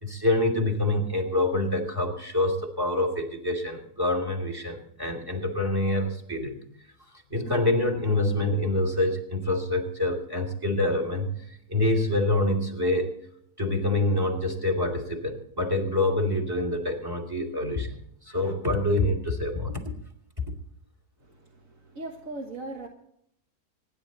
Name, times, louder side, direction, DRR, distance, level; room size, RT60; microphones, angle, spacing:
voice 1, 0.0-6.6 7.3-13.1 13.6-17.9 18.3-19.7, left 2 dB, 15° right, 4 dB, 2.7 m, -26 dB
voice 2, 21.2-22.9, right 2 dB, 60° right, 1 dB, 1.8 m, -39 dB
26.0 x 10.5 x 4.0 m, 0.70 s
omnidirectional pair, 1.6 m